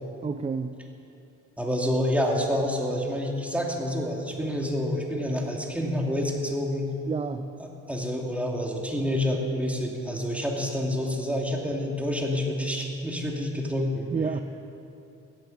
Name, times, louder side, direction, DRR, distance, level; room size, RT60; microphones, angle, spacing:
voice 1, 0.2-0.9 7.1-7.6 14.1-14.4, right 5 dB, 20° right, 8 dB, 0.5 m, -30 dB
voice 2, 1.6-6.9 7.6-14.1, left 1 dB, 5° right, -1 dB, 2.5 m, -28 dB
16.0 x 9.5 x 7.2 m, 2.9 s
cardioid pair, 90°, 30 cm